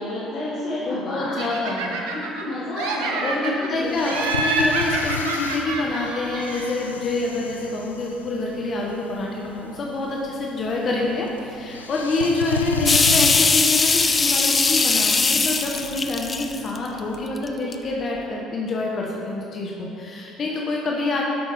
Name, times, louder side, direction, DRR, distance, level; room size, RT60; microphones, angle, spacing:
voice 1, 0.0-1.4 2.1-3.9 18.1-18.2, left 1 dB, 65° left, -11 dB, 2.5 m, -30 dB
voice 2, 0.8-2.0 3.2-21.2, left 2 dB, 45° left, -2 dB, 1.3 m, -27 dB
Laughter, 1.4-2.5 2.8-3.7 4.1-6.8, right 2 dB, 70° right, 1.0 m, -27 dB
sound 1, 3.7-17.3, left 4 dB, 90° left, 0.4 m, -35 dB
sound 2, 12.9-17.0 17.5-17.7, left 4 dB, 30° left, 0.6 m, -20 dB
12.0 x 6.0 x 5.2 m, 2.8 s
hypercardioid pair, 60°, 0 cm